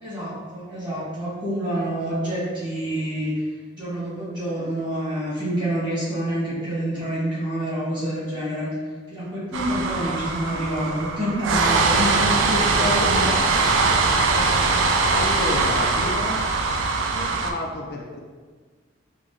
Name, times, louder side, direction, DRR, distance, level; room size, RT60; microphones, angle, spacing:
voice 1, 0.0-3.4 3.7-8.7 9.1-13.4 14.1-14.7 15.0-15.5, equal, 25° right, -9 dB, 1.3 m, -28 dB
sound 1, 9.5-17.5, right 3 dB, 85° right, 0.3 m, -21 dB
voice 2, 12.8-13.6 15.1-16.4 17.1-18.2, left 2 dB, 50° left, 0 dB, 0.3 m, -31 dB
4.7 x 2.1 x 2.5 m, 1.5 s
head